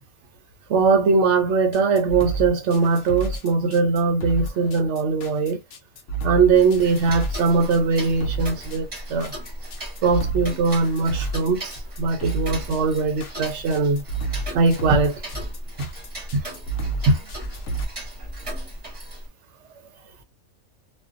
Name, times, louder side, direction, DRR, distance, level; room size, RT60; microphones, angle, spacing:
voice 1, 0.7-5.6 6.2-9.3 10.0-14.0 14.5-15.2 17.1-17.2, right 4 dB, 65° right, 0.8 m, -21 dB
sound 1, 1.7-17.8, right 3 dB, 65° left, 0.9 m, -30 dB
Tick-tock, 6.5-19.3, right 1 dB, 30° right, 0.9 m, -36 dB
2.5 x 2.2 x 2.4 m
omnidirectional pair, 1.4 m